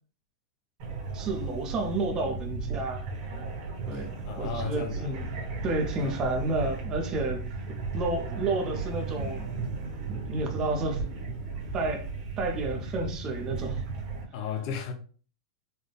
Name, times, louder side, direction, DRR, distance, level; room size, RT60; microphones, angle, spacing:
Scuba Tanks - Breathing dive, 0.8-14.2, right 4 dB, 40° right, 1.2 m, -35 dB
voice 1, 1.1-3.1 3.9-5.3 5.6-7.4 7.9-9.5 10.1-11.0 11.7-12.1 12.4-13.8, right 2 dB, 20° right, 0.7 m, -31 dB
voice 2, 3.9-5.1 6.0-6.1 14.3-14.9, left 6 dB, 35° left, 0.5 m, -35 dB
4.1 x 2.2 x 3.2 m
supercardioid pair, 170°, 3 cm